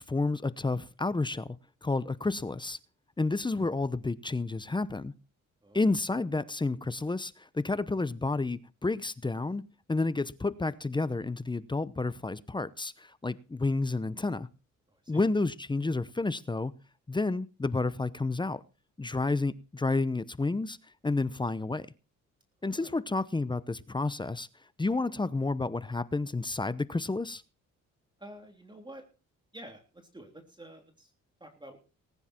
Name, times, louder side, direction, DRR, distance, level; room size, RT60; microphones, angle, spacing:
voice 1, 0.0-1.5 1.8-2.8 3.2-5.1 5.7-9.6 9.9-14.5 15.1-16.7 17.1-18.6 19.0-20.8 21.0-21.9 22.6-24.5 24.8-27.4, left 3 dB, 15° left, 16 dB, 0.8 m, -30 dB
voice 2, 14.9-15.2 22.7-22.9 28.2-29.0 29.5-31.1 31.4-31.8, right 1 dB, 15° right, 4 dB, 3.3 m, -49 dB
19.0 x 9.8 x 4.5 m, 0.34 s
cardioid pair, 90°, 30 cm